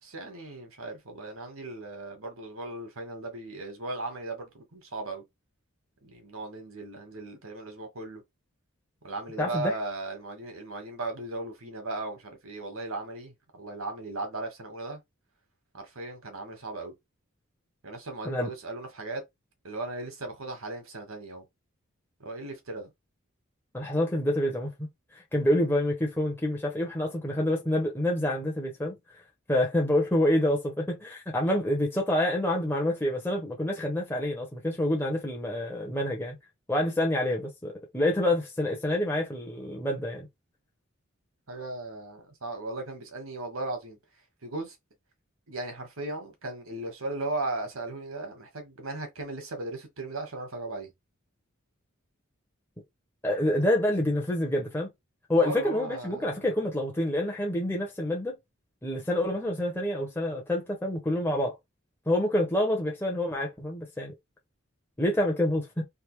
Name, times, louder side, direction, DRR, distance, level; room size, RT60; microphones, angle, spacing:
voice 1, 0.0-5.2 6.0-8.2 9.0-15.0 15.7-16.9 17.8-19.2 19.6-21.4 22.2-22.9 41.5-44.0 44.4-44.8 45.5-50.9 55.4-56.4, right 2 dB, 85° right, 1.5 m, -37 dB
voice 2, 9.4-9.7 18.2-18.5 23.7-24.9 25.1-29.0 29.5-36.4 36.7-40.3 53.2-54.9 55.3-58.4 58.8-61.5 62.1-64.1 65.0-65.8, left 1 dB, 10° left, 0.8 m, -27 dB
3.4 x 2.7 x 3.1 m
head